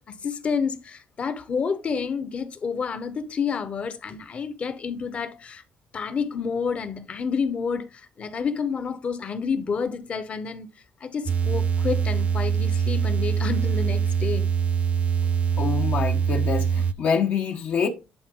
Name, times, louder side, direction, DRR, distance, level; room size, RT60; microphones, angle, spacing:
voice 1, 0.0-5.6 5.9-10.7 11.0-14.6, left 6 dB, 40° left, 1.1 m, -29 dB
sound 1, 11.3-16.9, right 7 dB, 45° right, 0.5 m, -23 dB
voice 2, 15.6-17.9, left 6 dB, 60° left, 1.2 m, -25 dB
10.5 x 3.9 x 3.8 m
cardioid pair, 120°, 3 cm